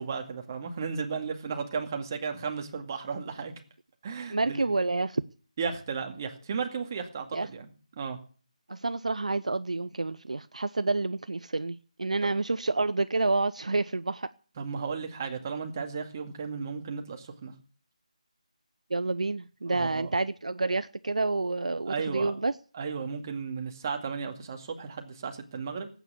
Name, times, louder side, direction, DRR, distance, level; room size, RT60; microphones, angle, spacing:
voice 1, 0.0-3.5 4.0-4.6 5.6-7.7 8.0-8.2 14.6-17.5 19.7-20.1 21.9-22.4 22.7-25.9, right 5 dB, 25° right, 5 dB, 2.1 m, -34 dB
voice 2, 4.3-5.2 7.3-7.5 8.7-14.3 18.9-22.5, right 3 dB, 65° right, 13 dB, 0.7 m, -29 dB
16.0 x 9.1 x 8.4 m, 0.42 s
figure-of-eight pair, 160°, 4 cm